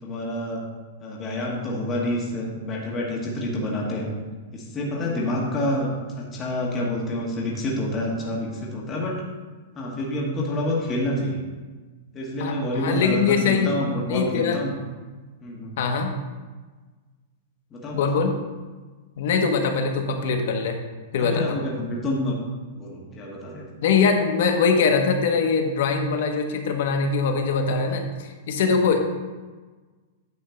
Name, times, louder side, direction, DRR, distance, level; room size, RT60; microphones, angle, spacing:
voice 1, 0.0-0.6 1.0-4.1 4.5-9.2 9.8-11.4 12.1-14.7 15.4-15.8 17.7-18.2 21.2-22.4 22.7-23.6, left 1 dB, 15° left, -3 dB, 1.2 m, -28 dB
voice 2, 12.4-13.8 14.1-14.6 15.8-16.1 17.9-18.3 19.2-20.8 21.1-21.6 23.8-29.0, left 5 dB, 55° left, 4 dB, 1.2 m, -22 dB
9.7 x 3.7 x 6.9 m, 1.3 s
supercardioid pair, 175°, 0 cm